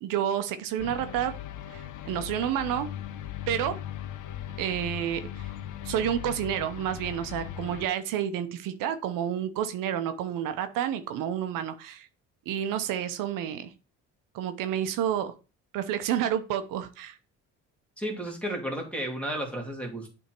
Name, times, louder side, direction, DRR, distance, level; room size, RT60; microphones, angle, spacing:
voice 1, 0.0-1.3 1.7-2.9 3.5-3.7 4.6-5.5 5.8-12.1 12.5-13.7 14.3-15.3 15.7-17.2, right 10 dB, 85° right, 9 dB, 0.8 m, -30 dB
sound 1, 0.8-7.9, left 11 dB, 70° left, 0.8 m, -39 dB
voice 2, 18.0-20.1, equal, 5° left, 1 dB, 2.5 m, -33 dB
8.2 x 3.5 x 4.5 m, 0.32 s
cardioid pair, 85°, 32 cm